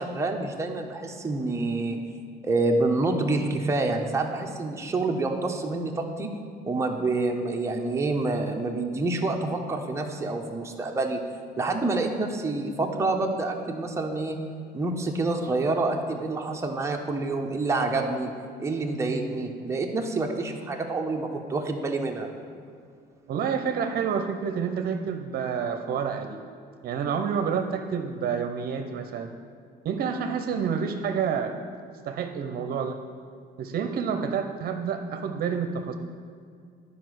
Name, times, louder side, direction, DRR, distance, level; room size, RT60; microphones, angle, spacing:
voice 1, 0.0-2.0 2.4-6.3 6.7-11.2 11.6-14.4 14.7-18.3 18.6-22.3, right 2 dB, 15° right, 1 dB, 0.9 m, -27 dB
voice 2, 23.3-26.4 26.8-29.3 29.8-31.5 32.1-33.0 33.6-35.9, right 6 dB, 65° right, 6 dB, 0.7 m, -28 dB
10.0 x 5.0 x 6.4 m, 2.3 s
cardioid pair, 110°, 17 cm